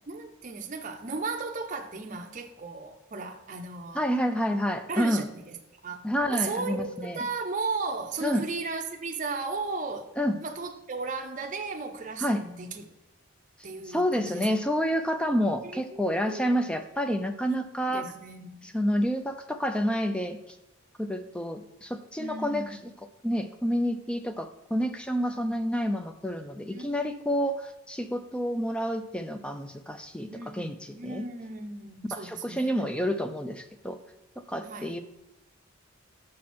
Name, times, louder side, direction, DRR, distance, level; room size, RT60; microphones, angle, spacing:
voice 1, 0.1-4.0 4.9-5.6 5.8-10.1 10.4-12.8 13.6-14.5 15.6-16.7 17.9-18.7 22.2-22.9 26.7-27.4 30.3-32.8 34.6-34.9, right 4 dB, 35° right, 0.6 m, -36 dB
voice 2, 3.9-5.3 6.0-7.3 8.2-8.5 10.2-10.4 12.2-12.4 13.9-18.1 18.6-20.6 21.0-22.8 23.2-31.3 32.1-34.0 34.5-35.0, equal, 5° left, 0.4 m, -29 dB
6.3 x 6.0 x 4.3 m
head